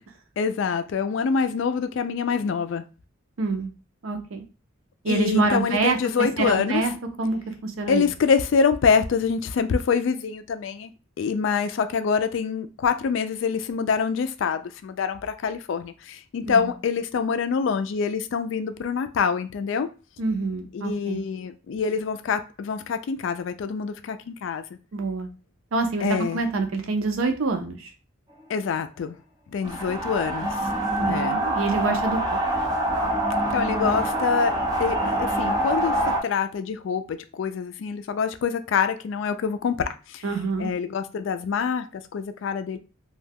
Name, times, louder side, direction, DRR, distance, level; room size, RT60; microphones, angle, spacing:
voice 1, 0.4-2.8 5.1-6.9 7.9-10.9 11.2-19.9 20.7-24.6 26.0-26.4 28.5-29.2 29.5-30.7 31.1-31.4 33.5-34.5 34.8-40.2 40.6-42.8, left 6 dB, 65° left, 0.3 m, -25 dB
voice 2, 3.4-3.7 4.0-4.4 5.0-6.9 7.2-8.1 16.5-16.7 20.2-21.2 24.9-25.3 25.7-27.9 31.0-32.4 40.2-40.7, right 3 dB, 80° right, 0.5 m, -26 dB
sound 1, 29.6-36.2, right 1 dB, 20° right, 0.4 m, -25 dB
2.3 x 2.1 x 3.3 m
head